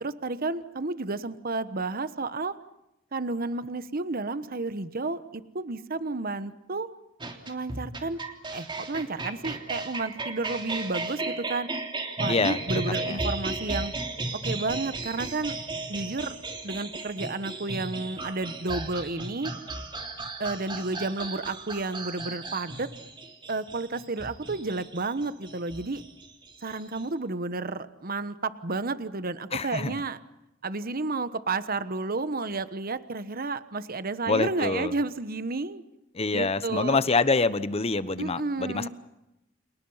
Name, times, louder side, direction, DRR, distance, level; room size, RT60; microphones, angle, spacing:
voice 1, 0.0-2.6 3.1-6.9 7.5-8.2 8.5-11.7 12.2-13.9 14.4-15.6 15.9-16.4 16.6-19.5 20.4-22.9 23.5-26.0 26.6-30.2 30.6-35.8 36.3-37.0 38.2-38.9, right 3 dB, 50° right, 13 dB, 1.2 m, -31 dB
sound 1, 7.2-27.0, right 2 dB, 25° right, 3.3 m, -35 dB
voice 2, 12.3-12.6 13.0-13.2 29.5-30.0 34.3-34.9 36.1-38.9, left 3 dB, 30° left, 14 dB, 1.1 m, -26 dB
30.0 x 28.5 x 5.7 m, 0.89 s
head